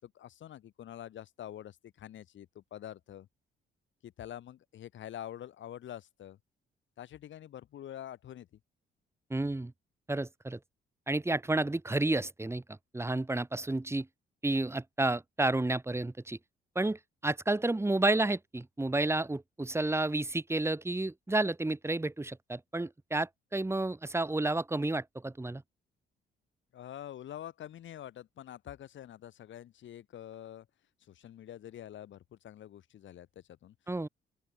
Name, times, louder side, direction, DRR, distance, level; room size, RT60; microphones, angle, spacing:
voice 1, 0.0-3.3 4.0-6.4 7.0-8.5 26.7-30.7 31.1-33.7, left 11 dB, 70° left, 6.4 m, -46 dB
voice 2, 9.3-9.7 10.1-10.6 11.1-12.6 12.9-14.1 14.4-16.4 16.8-25.6 33.9-34.1, right 2 dB, 15° right, 3.7 m, -31 dB
open air
cardioid pair, 90°, 20 cm